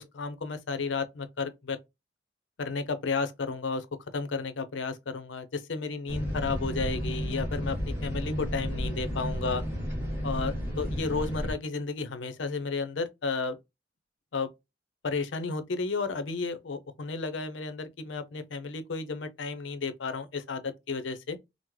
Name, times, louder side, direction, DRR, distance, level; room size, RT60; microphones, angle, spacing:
voice 1, 0.0-1.8 2.6-3.9 4.1-9.6 10.2-13.6 14.3-14.5 15.0-21.4, left 4 dB, 85° left, 0.6 m, -33 dB
sound 1, 6.1-11.5, equal, 10° right, 1.4 m, -32 dB
3.6 x 2.0 x 3.0 m
head